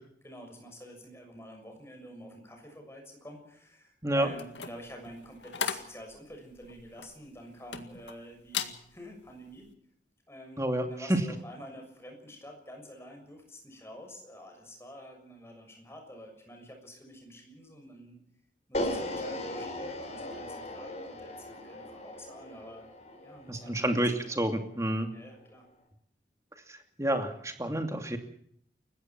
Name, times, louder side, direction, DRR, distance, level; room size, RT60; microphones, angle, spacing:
voice 1, 0.2-9.7 10.3-18.2 18.7-22.9 23.2-24.2 25.1-25.7, equal, 15° left, 3 dB, 6.7 m, -48 dB
sound 1, 4.3-8.2 8.5-8.8 9.3-9.5, left 7 dB, 85° left, 2.0 m, -37 dB
voice 2, 10.6-11.2 23.5-25.1 26.7-28.2, right 1 dB, 15° right, 6 dB, 2.6 m, -29 dB
sound 2, 18.7-24.9, left 1 dB, 40° left, 4.7 m, -38 dB
29.5 x 15.5 x 6.1 m, 0.67 s
head